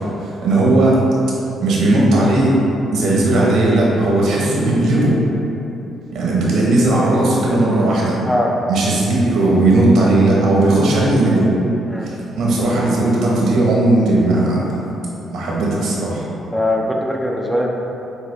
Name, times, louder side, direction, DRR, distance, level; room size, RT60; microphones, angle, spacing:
voice 1, 0.2-1.0 1.6-2.6 2.9-5.2 6.1-8.2 8.7-11.5 12.0-14.8 15.3-16.3, right 2 dB, 80° right, -4 dB, 1.0 m, -16 dB
voice 2, 16.5-17.7, left 1 dB, 5° left, -1 dB, 0.5 m, -20 dB
6.4 x 2.3 x 3.3 m, 2.9 s
cardioid pair, 90°, 0 cm